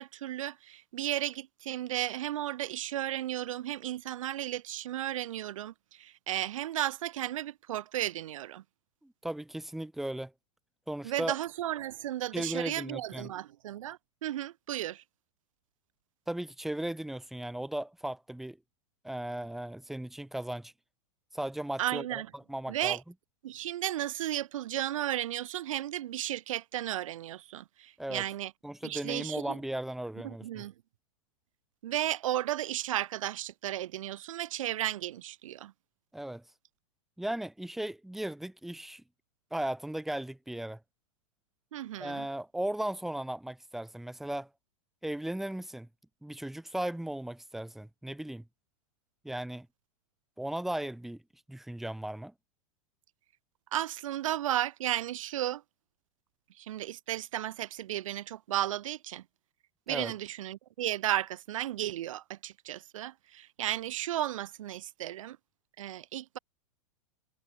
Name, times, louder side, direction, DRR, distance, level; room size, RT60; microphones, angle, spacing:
voice 1, 0.0-8.6 11.0-15.0 21.8-22.3 22.7-23.0 23.4-28.5 28.8-29.6 30.2-30.7 31.8-35.7 41.7-42.3 53.7-55.6 56.6-59.2 59.9-65.4 65.8-66.4, right 13 dB, 65° right, 3.1 m, -34 dB
voice 2, 9.0-10.3 10.9-11.3 12.3-13.3 16.3-18.6 19.0-20.7 21.3-22.1 22.3-23.0 28.0-28.2 28.6-30.6 36.1-36.4 37.2-39.0 39.5-40.8 42.0-44.5 45.0-45.9 46.2-48.4 49.2-49.7 50.4-51.2 51.5-52.3 59.9-60.1, right 1 dB, ahead, 1.7 m, -36 dB
supercardioid pair, 175°, 18 cm